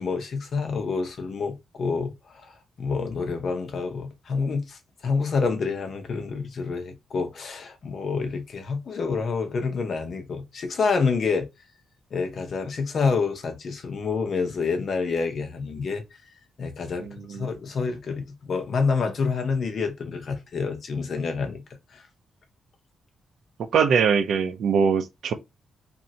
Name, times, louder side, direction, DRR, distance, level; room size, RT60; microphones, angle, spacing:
voice 1, 0.0-2.1 2.4-2.5 2.8-11.5 12.1-16.0 16.6-21.6 21.9-22.0, left 4 dB, 50° left, 0.7 m, -28 dB
voice 2, 17.0-17.5 23.7-25.3, right 6 dB, 65° right, 0.5 m, -22 dB
3.0 x 2.6 x 2.8 m
wide cardioid pair, 155°, 0 cm